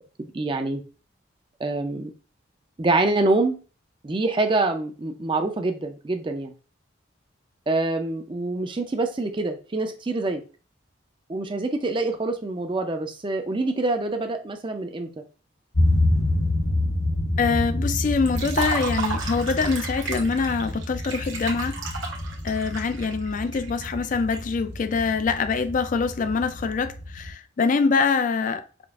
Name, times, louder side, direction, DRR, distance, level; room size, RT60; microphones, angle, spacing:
voice 1, 0.2-0.8 1.6-2.1 2.8-3.6 4.0-6.5 7.7-10.4 11.3-15.1, right 2 dB, 25° right, 0.4 m, -25 dB
sound 1, 15.7-27.3, left 1 dB, 90° left, 1.1 m, -28 dB
voice 2, 17.4-21.8 22.4-28.6, left 4 dB, 40° left, 0.3 m, -24 dB
Liquid, 18.3-24.4, right 5 dB, 75° right, 0.9 m, -33 dB
5.1 x 2.4 x 2.4 m
head